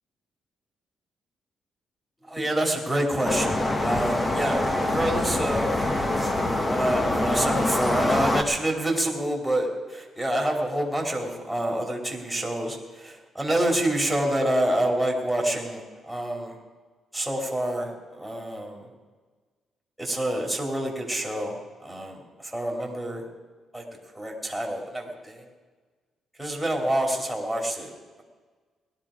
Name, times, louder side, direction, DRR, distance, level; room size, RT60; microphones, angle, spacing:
voice 1, 2.2-6.3 6.6-16.6 17.1-18.9 20.0-23.3 23.7-23.8 24.1-25.5 26.4-27.9, right 1 dB, ahead, -1 dB, 2.6 m, -27 dB
sound 1, 3.2-8.4, left 1 dB, 20° left, 1.1 m, -25 dB
17.5 x 12.5 x 4.9 m, 1.4 s
cardioid pair, 145°, 0 cm